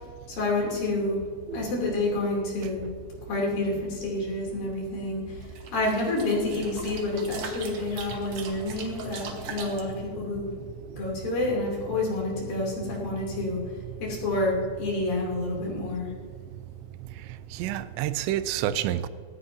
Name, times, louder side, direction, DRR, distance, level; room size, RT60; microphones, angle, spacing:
voice 1, 0.3-1.2 1.5-2.9 3.2-10.5 11.0-13.6 14.0-16.1, left 2 dB, 55° left, 4.5 m, -29 dB
sound 1, 5.4-9.8, right 5 dB, 65° right, 1.9 m, -40 dB
voice 2, 17.5-19.1, right 12 dB, 85° right, 2.8 m, -28 dB
17.5 x 15.5 x 2.8 m
omnidirectional pair, 5.1 m